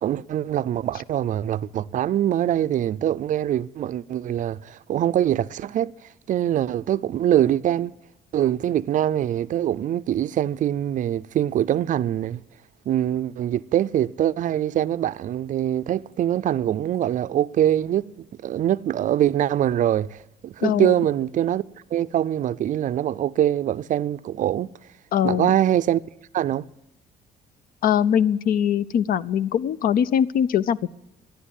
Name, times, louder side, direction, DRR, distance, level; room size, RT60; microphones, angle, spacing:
voice 1, 0.0-5.9 6.3-7.9 8.3-12.4 12.9-18.1 18.4-20.2 20.4-21.6 21.9-24.7 25.2-26.0 26.3-26.6, right 11 dB, 50° right, 0.5 m, -23 dB
voice 2, 20.6-20.9 25.1-25.5 27.8-30.9, left 9 dB, 55° left, 0.6 m, -22 dB
13.5 x 10.5 x 7.3 m
cardioid pair, 110°, 17 cm